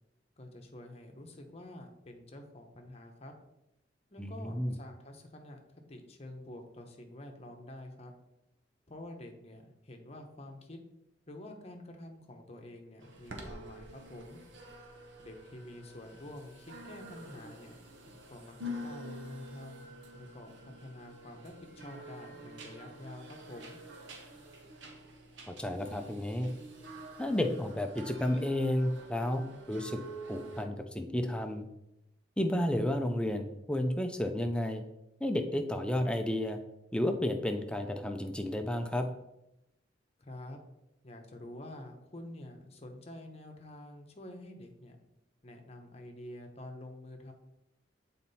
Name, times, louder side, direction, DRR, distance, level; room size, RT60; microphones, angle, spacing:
voice 1, 0.4-3.3 4.1-5.6 5.9-8.1 8.9-10.8 11.3-14.4 15.2-17.8 18.3-23.8 40.2-40.6 41.0-45.0 45.4-47.3, left 1 dB, 35° left, 4 dB, 0.9 m, -48 dB
voice 2, 4.2-4.7 25.5-26.5 27.2-30.0 30.3-31.6 32.4-34.8 35.2-36.6 36.9-39.0, left 1 dB, 5° left, 5 dB, 0.5 m, -32 dB
sound 1, 13.0-30.7, equal, 80° right, 1.1 m, -48 dB
7.3 x 4.2 x 4.1 m, 0.88 s
head